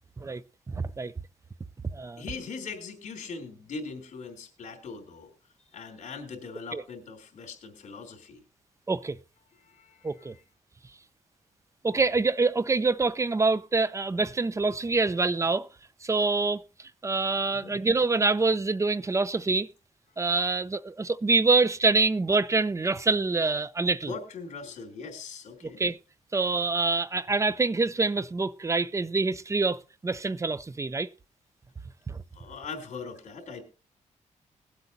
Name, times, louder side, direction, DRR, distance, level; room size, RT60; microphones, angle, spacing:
voice 1, 0.7-1.1 1.9-2.2 6.7-6.8 8.9-9.2 10.0-10.3 11.8-15.7 16.0-16.6 17.0-19.7 20.2-24.1 25.8-26.0 26.3-31.1 32.1-32.2, right 3 dB, 20° right, 0.6 m, -26 dB
voice 2, 2.2-5.3 5.7-8.4 9.6-10.4 17.5-17.7 24.1-25.8 32.3-33.6, left 4 dB, 65° left, 3.4 m, -41 dB
21.0 x 8.1 x 2.8 m
cardioid pair, 95°, 13 cm